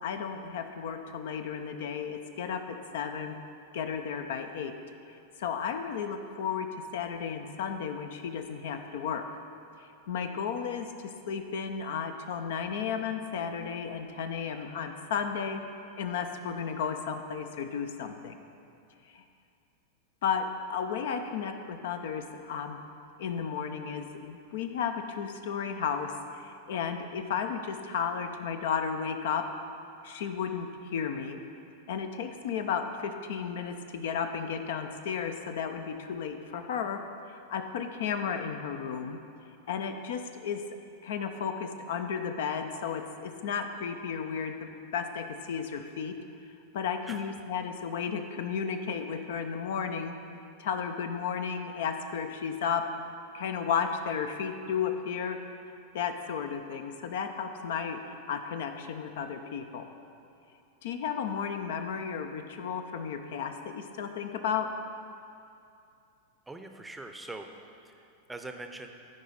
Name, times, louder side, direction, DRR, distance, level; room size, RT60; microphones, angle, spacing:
voice 1, 0.0-3.4 3.7-4.7 5.1-9.2 9.8-10.9 11.3-15.6 16.0-18.4 19.1-19.2 20.2-22.8 23.2-29.5 30.0-31.4 31.9-37.0 37.3-39.2 39.7-40.6 41.0-46.2 46.7-50.2 50.6-52.9 53.3-55.4 55.9-59.9 60.8-64.7, left 7 dB, 55° left, 7 dB, 0.5 m, -33 dB
voice 2, 47.0-47.5 66.5-67.5 67.8-68.9, right 2 dB, 5° right, 5 dB, 0.6 m, -43 dB
14.0 x 4.9 x 3.9 m, 2.6 s
figure-of-eight pair, 90°, 0 cm